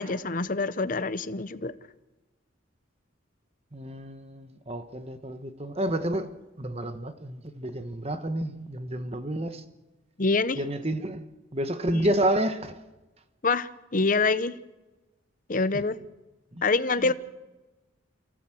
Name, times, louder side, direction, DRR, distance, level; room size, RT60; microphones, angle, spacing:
voice 1, 0.0-1.7 10.2-10.6 11.9-12.1 13.4-14.6 15.5-16.0 16.6-17.1, left 3 dB, 40° left, 0.9 m, -26 dB
voice 2, 3.7-9.6 10.6-11.2 11.5-12.8 15.7-15.8 16.5-16.6 17.0-17.1, right 1 dB, 30° right, 1.3 m, -30 dB
29.0 x 14.5 x 7.8 m
head